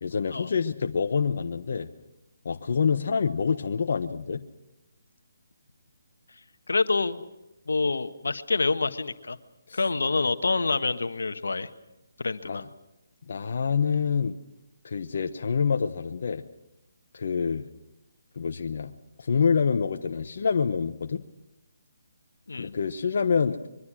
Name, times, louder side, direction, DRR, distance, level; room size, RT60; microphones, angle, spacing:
voice 1, 0.0-1.9 2.4-4.4 9.7-9.8 12.4-12.6 13.3-14.4 14.8-16.4 17.1-17.6 18.4-18.9 19.2-21.2 22.6-23.7, left 6 dB, 55° left, 6 dB, 1.0 m, -26 dB
voice 2, 6.7-7.2 7.7-9.4 9.7-11.7 12.2-12.6 22.5-22.8, left 3 dB, 80° left, 10 dB, 1.4 m, -27 dB
24.5 x 22.5 x 6.3 m, 0.92 s
hypercardioid pair, 160°, 0 cm